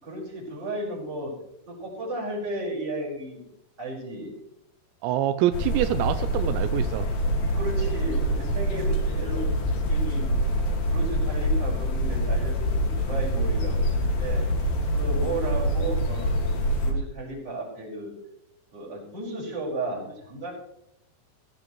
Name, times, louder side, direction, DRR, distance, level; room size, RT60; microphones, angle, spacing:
voice 1, 0.0-1.3 1.7-3.4 3.8-4.3 7.5-10.3 10.9-14.4 14.9-16.4 16.8-18.1 18.7-20.5, right 2 dB, 30° right, -4 dB, 5.7 m, -34 dB
voice 2, 5.0-7.1, right 12 dB, 85° right, 11 dB, 2.6 m, -25 dB
sound 1, 5.5-16.9, equal, 55° left, 3.3 m, -25 dB
17.5 x 15.5 x 3.1 m, 0.77 s
omnidirectional pair, 5.7 m